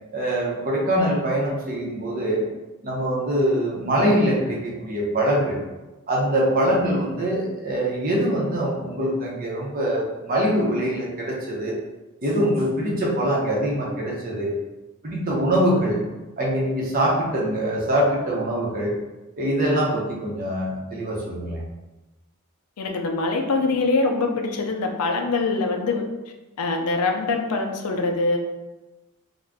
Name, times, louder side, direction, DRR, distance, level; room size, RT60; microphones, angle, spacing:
voice 1, 0.1-2.4 2.8-5.6 6.1-11.8 12.2-14.5 15.0-16.0 16.4-18.9 19.4-21.6, right 1 dB, 40° right, -3 dB, 0.6 m, -23 dB
voice 2, 22.8-26.1 26.6-28.4, left 3 dB, 85° left, 3 dB, 0.4 m, -23 dB
2.5 x 2.1 x 3.4 m, 1.1 s
head